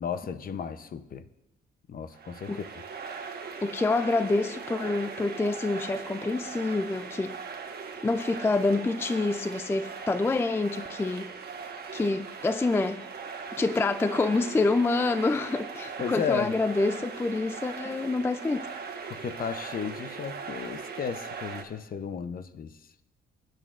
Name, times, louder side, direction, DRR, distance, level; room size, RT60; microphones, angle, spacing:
voice 1, 0.0-1.2 1.9-2.5 16.0-16.5 19.1-22.7, left 7 dB, 45° left, 0.7 m, -34 dB
sound 1, 2.1-21.6, right 5 dB, 50° right, 1.2 m, -39 dB
voice 2, 3.6-7.4 8.0-11.3 11.9-13.0 13.6-18.7, left 3 dB, 10° left, 0.3 m, -27 dB
18.5 x 9.1 x 2.5 m
cardioid pair, 90°, 20 cm